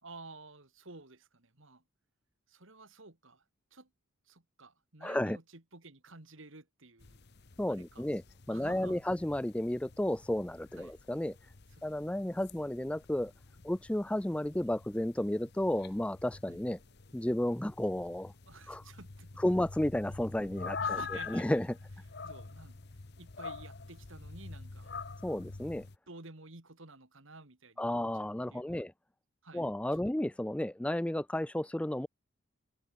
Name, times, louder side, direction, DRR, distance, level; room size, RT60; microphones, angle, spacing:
voice 1, 0.0-1.8 2.5-3.4 3.7-3.9 4.3-7.2 7.7-8.1 8.5-9.0 10.8-11.0 11.8-11.9 16.5-16.6 18.5-19.4 20.4-21.6 22.2-22.8 23.2-24.9 26.1-28.9 29.4-30.0, right 3 dB, 65° right, 2.5 m, -52 dB
voice 2, 5.0-5.4 7.6-8.2 8.5-11.4 11.8-13.3 13.6-16.8 17.1-18.3 18.7-18.8 19.4-21.0 21.3-21.7 25.2-25.9 27.8-28.9 29.5-32.1, left 1 dB, 5° left, 0.3 m, -32 dB
sound 1, 7.0-26.0, left 5 dB, 50° left, 1.0 m, -46 dB
head